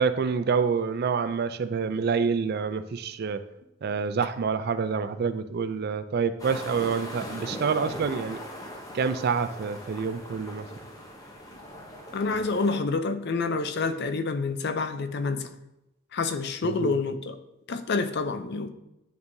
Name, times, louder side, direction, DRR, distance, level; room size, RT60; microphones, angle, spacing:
voice 1, 0.0-3.4 3.8-8.4 8.9-10.7 16.6-17.0, right 5 dB, 45° right, 12 dB, 0.3 m, -27 dB
sound 1, 6.4-12.8, equal, 15° left, 0.8 m, -40 dB
voice 2, 12.1-15.5 16.1-17.4 17.7-18.7, left 4 dB, 50° left, 10 dB, 0.5 m, -28 dB
9.5 x 5.3 x 2.7 m, 0.89 s
head